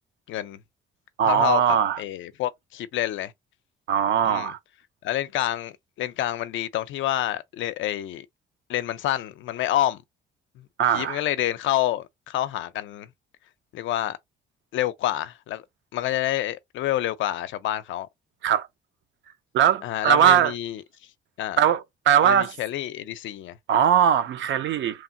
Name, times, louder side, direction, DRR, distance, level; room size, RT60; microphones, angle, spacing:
voice 1, 0.3-0.6 1.2-3.3 4.2-4.5 5.0-8.3 8.7-10.0 10.6-10.7 10.9-13.1 13.7-14.2 14.7-15.6 15.9-18.1 19.8-20.8 21.4-21.6 22.2-23.6, left 13 dB, 75° left, 0.5 m, -28 dB
voice 2, 1.2-2.0 3.9-4.6 10.8-11.2 18.4-18.7 19.5-20.5 21.6-22.5 23.7-25.0, right 9 dB, 75° right, 0.6 m, -20 dB
3.1 x 2.2 x 2.6 m
cardioid pair, 90°, 20 cm